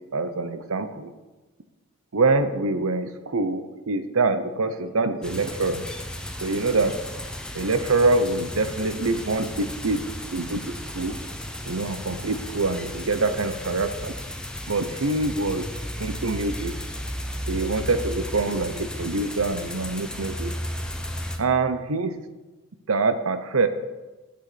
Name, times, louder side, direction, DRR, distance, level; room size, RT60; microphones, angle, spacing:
voice 1, 0.1-1.1 2.1-5.9 6.4-6.9 7.5-10.0 10.3-10.6 10.9-11.2 11.7-14.1 14.7-15.7 16.0-16.7 17.5-20.5 21.4-22.2 22.9-23.7, right 3 dB, 80° right, 10 dB, 0.8 m, -25 dB
sound 1, 5.2-21.4, equal, 5° left, 0.7 m, -34 dB
7.8 x 6.9 x 7.9 m, 1.1 s
head